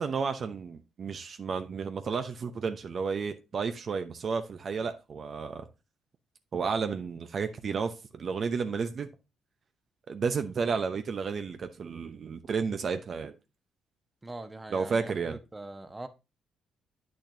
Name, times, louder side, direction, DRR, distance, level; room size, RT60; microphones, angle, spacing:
voice 1, 0.0-5.6 6.5-9.1 10.1-13.3 14.7-15.4, right 5 dB, 50° right, 0.8 m, -32 dB
voice 2, 14.2-16.1, right 2 dB, 15° right, 1.0 m, -42 dB
8.6 x 6.4 x 2.7 m
cardioid pair, 90°, 0 cm